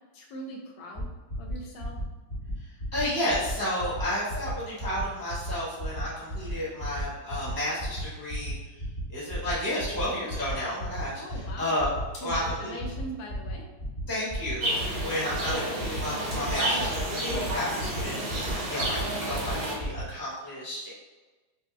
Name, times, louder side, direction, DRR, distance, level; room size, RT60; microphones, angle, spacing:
voice 1, 0.1-1.1 1.4-2.0 11.1-11.8 12.2-13.7, equal, 75° left, 1 dB, 1.4 m, -41 dB
sound 1, 1.0-1.1 1.3-1.5 1.8-2.0 2.3-2.5 2.8-3.0 3.3-3.5 3.8-4.0 4.3-4.5 4.8-5.0 5.3-5.5 5.8-6.0 6.3-6.5 6.8-7.0 7.3-7.5 7.8-8.0 8.3-8.5 8.8-9.0 9.3-9.5 9.8-10.0 10.3-10.5 10.8-11.0 11.3-11.5 11.8-12.0 12.3-12.5 12.8-13.0 13.3-13.5 13.8-14.0 14.3-14.5 14.8-15.0 15.3-15.5 15.8-16.0 16.3-16.5 16.8-17.0 17.3-17.5 17.8-18.0 18.3-18.5 18.8-19.0 19.3-19.5 19.8-20.0, right 1 dB, 40° left, 0.8 m, -35 dB
voice 2, 2.9-8.5 9.1-11.9 12.2-12.8 14.1-20.9, left 1 dB, 20° right, -8 dB, 0.6 m, -32 dB
sound 2, 14.6-19.7, right 1 dB, 60° right, 0.5 m, -31 dB
5.2 x 2.1 x 3.3 m, 1.2 s
omnidirectional pair, 2.2 m